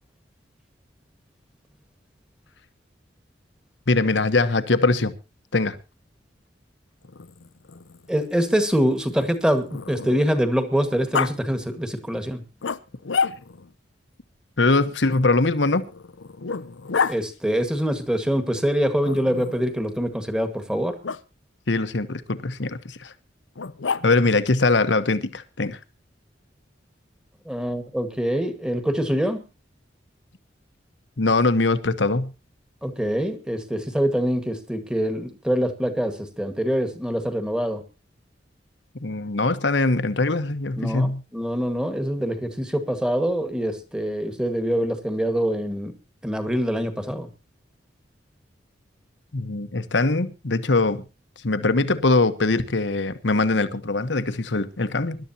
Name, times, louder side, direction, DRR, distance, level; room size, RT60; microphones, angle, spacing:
voice 1, 3.9-5.1 5.5-5.8 14.6-15.9 21.7-23.1 24.0-25.8 31.2-32.3 39.0-41.2 49.3-51.0 51.4-55.2, left 3 dB, 70° left, 1.1 m, -22 dB
Growling, 7.0-10.4 11.1-11.3 12.6-13.7 15.1-17.2 19.0-19.7 21.0-21.2 23.5-24.4, left 5 dB, 85° left, 0.7 m, -30 dB
voice 2, 8.1-12.4 17.1-21.0 27.5-29.4 32.8-37.8 40.8-45.9 46.2-47.3, equal, 5° right, 1.7 m, -24 dB
24.5 x 12.0 x 2.9 m
head